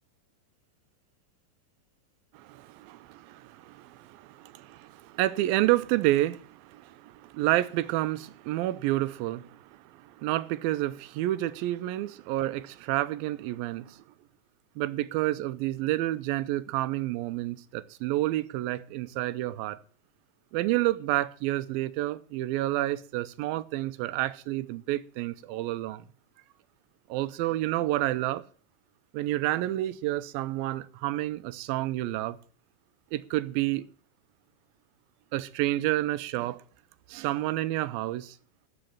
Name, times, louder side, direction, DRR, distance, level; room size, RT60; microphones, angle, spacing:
voice 1, 2.3-14.0 14.8-19.8 20.5-26.1 27.1-28.4 29.1-32.4 33.1-33.9 35.3-36.6 37.1-38.4, right 16 dB, 90° right, 2.5 m, -29 dB
13.5 x 5.1 x 9.0 m
omnidirectional pair, 4.1 m